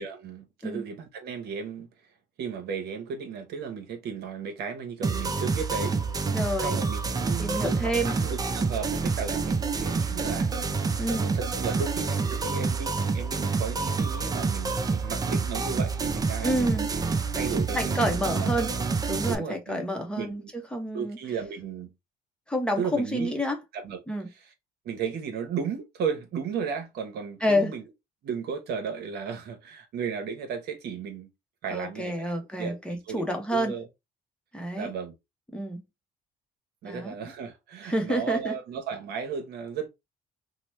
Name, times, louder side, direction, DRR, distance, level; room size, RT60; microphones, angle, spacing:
voice 1, 0.0-1.9 2.4-6.0 6.6-10.5 11.3-16.9 17.3-18.5 19.3-19.8 20.2-20.5 20.9-21.9 22.8-23.4 23.7-24.0 24.8-27.8 28.2-31.3 31.6-33.8 34.8-35.2 36.8-39.9, right 6 dB, 70° right, 0.9 m, -35 dB
sound 1, 5.0-19.3, right 4 dB, 20° right, 0.4 m, -28 dB
voice 2, 6.3-6.8 7.4-8.2 11.0-11.3 16.4-16.9 17.7-18.7 19.1-21.2 22.5-23.6 24.1-24.3 27.4-27.7 31.7-33.7 34.5-34.9 35.5-35.8 36.8-37.2 37.8-38.6, equal, 5° left, 0.7 m, -29 dB
2.9 x 2.1 x 3.0 m
cardioid pair, 110°, 17 cm